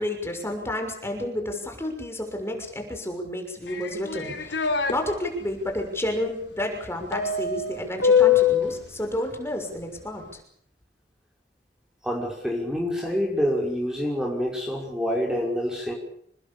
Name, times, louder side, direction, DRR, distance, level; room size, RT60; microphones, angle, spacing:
voice 1, 0.0-10.2, left 1 dB, 15° left, 3 dB, 6.3 m, -31 dB
sound 1, 3.7-4.9 7.1-8.7, left 7 dB, 80° left, 3.4 m, -22 dB
voice 2, 12.0-15.9, equal, 5° right, -1 dB, 5.8 m, -27 dB
28.0 x 21.0 x 7.1 m, 0.68 s
head